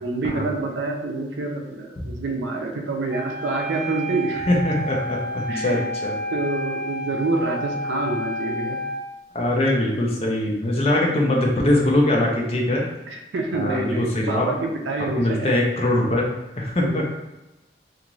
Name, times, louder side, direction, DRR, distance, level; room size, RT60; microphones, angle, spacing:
voice 1, 0.0-4.4 5.5-5.9 6.3-8.8 13.1-15.7 16.8-17.0, right 2 dB, 85° right, 1 dB, 0.4 m, -27 dB
Wind instrument woodwind instrument, 3.1-9.1, equal, 20° right, 0.7 m, -30 dB
voice 2, 4.5-6.2 9.3-12.8 13.5-14.5 15.2-16.3 16.6-17.0, left 1 dB, 35° left, -1 dB, 0.5 m, -22 dB
2.5 x 2.5 x 3.0 m, 1.0 s
head